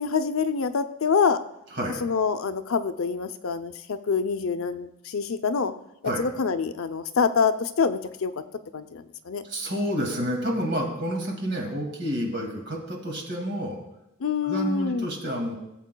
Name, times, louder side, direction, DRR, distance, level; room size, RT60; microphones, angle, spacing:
voice 1, 0.0-1.4 2.0-5.7 6.2-8.3 8.7-9.4 14.2-15.1, left 5 dB, 80° left, 8 dB, 0.5 m, -26 dB
voice 2, 9.4-13.8 14.4-15.6, equal, 55° right, 0 dB, 2.1 m, -29 dB
18.0 x 7.3 x 2.2 m, 0.88 s
head